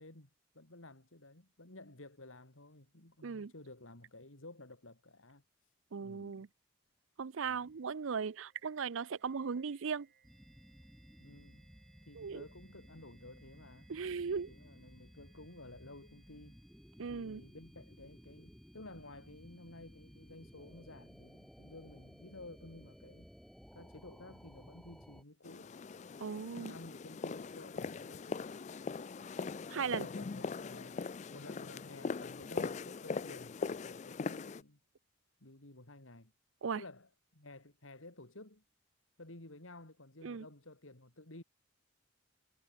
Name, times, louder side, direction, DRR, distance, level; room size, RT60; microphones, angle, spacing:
voice 1, 0.0-5.4 6.0-6.5 7.5-7.7 11.2-11.7 12.1-13.9 14.5-16.6 17.1-23.3 23.7-25.8 26.3-28.7 29.8-31.0 31.3-34.8 35.4-36.3 36.7-38.6 39.2-41.4, left 2 dB, 80° left, 3.5 m, -53 dB
voice 2, 3.2-3.5 5.9-6.5 7.2-10.1 12.2-12.4 13.9-14.5 17.0-17.4 26.2-26.7 29.7-30.1 36.6-36.8 40.2-40.5, right 6 dB, 80° right, 0.5 m, -38 dB
sound 1, 7.6-17.2, right 8 dB, 45° right, 6.1 m, -72 dB
sound 2, 10.2-25.2, equal, ahead, 2.6 m, -57 dB
sound 3, 25.4-34.6, left 4 dB, 35° left, 0.4 m, -41 dB
head